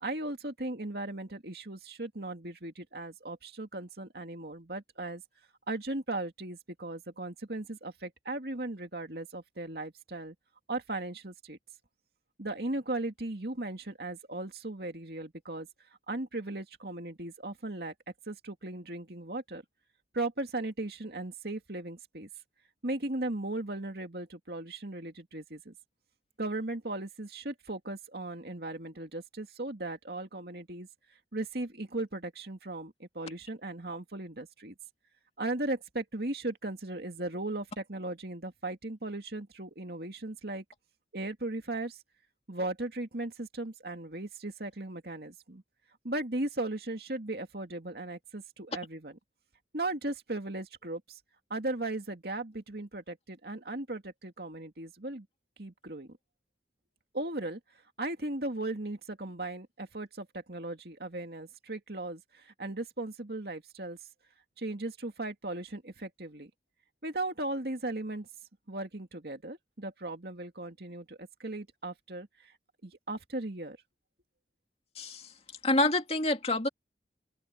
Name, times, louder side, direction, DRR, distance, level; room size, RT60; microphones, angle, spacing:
voice 1, 0.0-5.2 5.7-10.3 10.7-11.6 12.4-15.7 16.1-17.9 18.3-19.6 20.1-22.3 22.8-25.7 26.4-30.9 31.3-34.7 35.4-40.6 41.1-42.0 42.5-45.6 46.0-49.2 49.7-51.2 51.5-55.3 55.6-56.2 57.1-57.6 58.0-64.0 64.6-66.5 67.0-68.3 68.7-72.5 72.8-73.8, right 2 dB, 60° right, 2.5 m, -37 dB
voice 2, 75.0-75.3 75.6-76.7, left 2 dB, 35° left, 2.4 m, -27 dB
open air
head